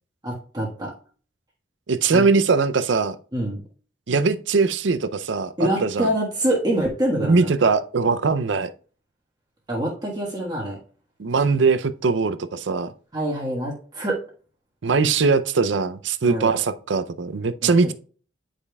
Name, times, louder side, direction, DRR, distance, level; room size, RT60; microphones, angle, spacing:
voice 1, 0.2-0.9 2.1-2.2 3.3-3.6 5.6-7.5 9.7-10.8 13.1-14.2 16.2-16.5 17.6-17.7, right 1 dB, 20° right, 1.5 m, -25 dB
voice 2, 1.9-3.2 4.1-6.1 7.2-8.7 11.2-12.9 14.8-17.9, right 4 dB, 80° right, 0.5 m, -21 dB
9.6 x 5.0 x 2.3 m
head